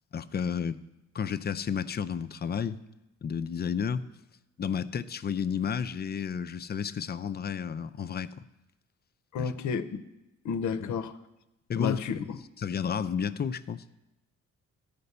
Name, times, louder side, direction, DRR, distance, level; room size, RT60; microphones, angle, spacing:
voice 1, 0.1-0.8 1.1-2.8 3.2-4.0 4.6-8.3 9.4-9.5 10.8-10.9 11.7-12.2 12.6-14.0, left 7 dB, 35° left, 12 dB, 0.4 m, -32 dB
voice 2, 9.3-10.0 10.4-11.1 11.8-12.4, left 6 dB, 75° left, 12 dB, 0.7 m, -31 dB
12.5 x 5.2 x 6.7 m, 0.95 s
cardioid pair, 90°, 30 cm